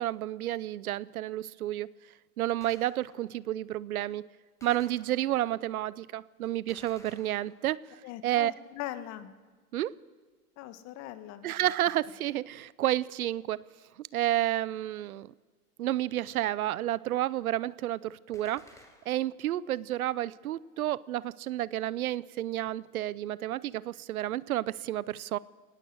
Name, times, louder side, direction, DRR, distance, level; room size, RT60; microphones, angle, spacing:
voice 1, 0.0-1.9 2.4-4.3 4.6-7.8 8.2-8.5 9.7-10.0 11.4-13.6 14.0-15.3 15.8-18.6 19.1-25.4, right 13 dB, 70° right, 0.8 m, -31 dB
Gunshot gunfire, 2.6-3.4 4.6-5.6 6.7-7.9 18.3-19.4, left 2 dB, 5° left, 2.5 m, -57 dB
voice 2, 8.0-9.3 10.6-11.5, left 13 dB, 40° left, 1.8 m, -40 dB
24.5 x 18.5 x 8.0 m
hypercardioid pair, 120°, 45 cm